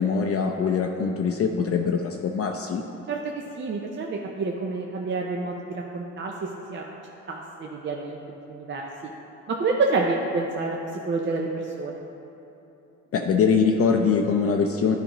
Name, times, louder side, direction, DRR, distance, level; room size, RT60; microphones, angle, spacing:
voice 1, 0.0-2.8 13.1-15.0, left 5 dB, 50° left, 2 dB, 0.5 m, -23 dB
voice 2, 3.1-6.9 7.3-9.1 9.5-12.0, right 3 dB, 40° right, 0 dB, 0.6 m, -29 dB
10.5 x 5.0 x 3.0 m, 2.9 s
cardioid pair, 90°, 30 cm